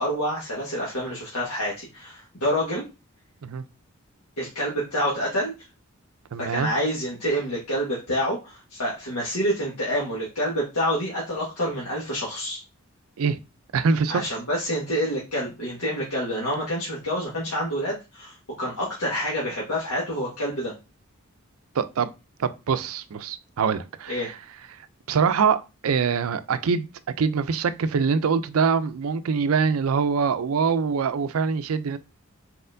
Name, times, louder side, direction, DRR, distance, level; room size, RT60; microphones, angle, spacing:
voice 1, 0.0-2.8 4.4-5.5 6.4-12.6 14.1-20.7 24.1-24.3, equal, 90° left, 1.5 m, -27 dB
voice 2, 6.3-6.7 13.2-13.4 13.7-14.3 21.8-22.1 22.4-24.3 25.1-26.9 27.2-32.0, right 5 dB, 80° right, 0.4 m, -24 dB
4.2 x 4.2 x 2.6 m
head